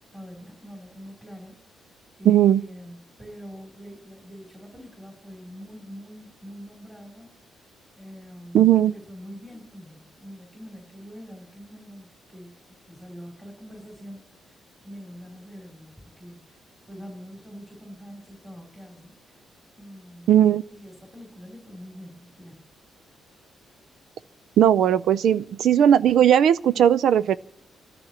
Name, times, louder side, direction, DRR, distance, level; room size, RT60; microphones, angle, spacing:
voice 1, 0.1-16.6 16.9-19.4 19.8-20.4 20.7-22.7, equal, 10° right, 0 dB, 3.2 m, -44 dB
voice 2, 2.3-2.6 8.5-8.9 20.3-20.6 24.6-27.4, right 10 dB, 70° right, 16 dB, 0.4 m, -17 dB
27.0 x 13.5 x 2.9 m, 0.84 s
cardioid pair, 140°, 0 cm